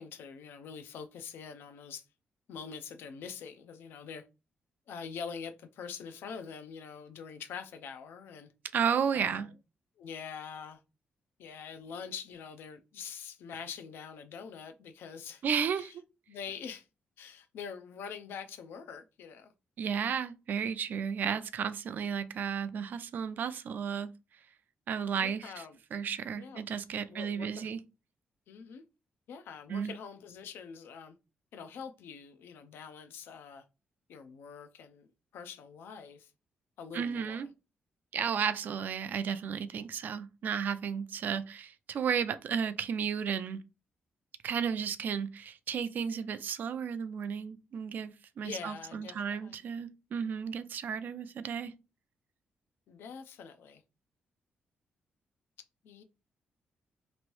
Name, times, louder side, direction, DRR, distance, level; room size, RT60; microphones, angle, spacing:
voice 1, 0.0-2.1 2.5-4.2 4.9-8.5 9.1-9.5 10.0-10.8 11.4-15.4 15.7-15.9 16.3-16.9 17.2-19.5 25.2-25.8 26.4-26.7 27.1-27.7 28.5-28.8 29.3-31.2 31.5-33.6 34.1-35.1 35.3-36.3 36.8-37.4 48.4-49.6 52.9-53.8 55.8-56.0, left 6 dB, 90° left, 0.4 m, -44 dB
voice 2, 8.7-9.5 15.4-15.9 19.8-24.1 24.9-25.6 25.9-27.8 29.7-29.9 36.9-37.5 38.1-43.6 44.4-51.7, right 7 dB, 55° right, 0.3 m, -33 dB
3.0 x 2.6 x 3.1 m
wide cardioid pair, 145°, 4 cm